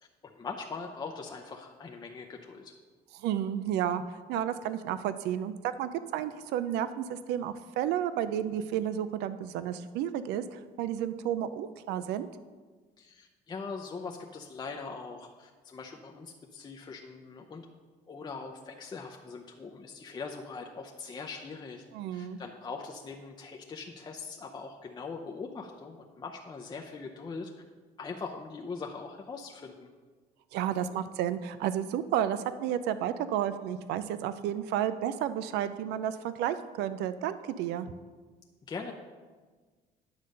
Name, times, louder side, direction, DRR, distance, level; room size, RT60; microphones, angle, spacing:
voice 1, 0.2-2.7 13.0-17.7 18.1-21.8 22.1-27.5 28.0-29.9 38.7-38.9, left 4 dB, 25° left, 1 dB, 0.6 m, -41 dB
voice 2, 3.2-5.5 5.8-12.3 21.9-22.4 30.5-37.9, right 10 dB, 85° right, 12 dB, 0.4 m, -32 dB
9.5 x 3.9 x 6.4 m, 1.4 s
cardioid pair, 110°, 17 cm